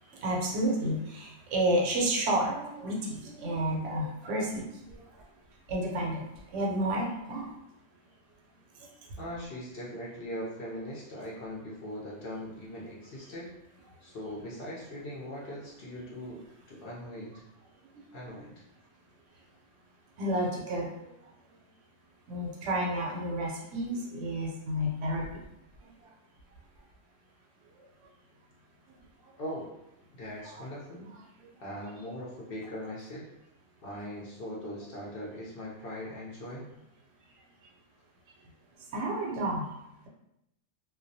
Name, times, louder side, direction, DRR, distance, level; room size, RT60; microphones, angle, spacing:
voice 1, 0.1-5.3 5.7-6.3 6.5-7.5 8.8-8.9 17.9-18.4 20.2-21.1 22.3-25.4 30.4-30.7 38.9-39.7, right 1 dB, 75° right, -1 dB, 0.9 m, -31 dB
voice 2, 9.2-13.5 14.0-17.4 18.1-18.6 29.4-29.7 30.1-31.1 31.6-33.3 33.8-36.7, equal, 60° left, -5 dB, 0.7 m, -40 dB
2.2 x 2.1 x 2.6 m, 0.86 s
omnidirectional pair, 1.3 m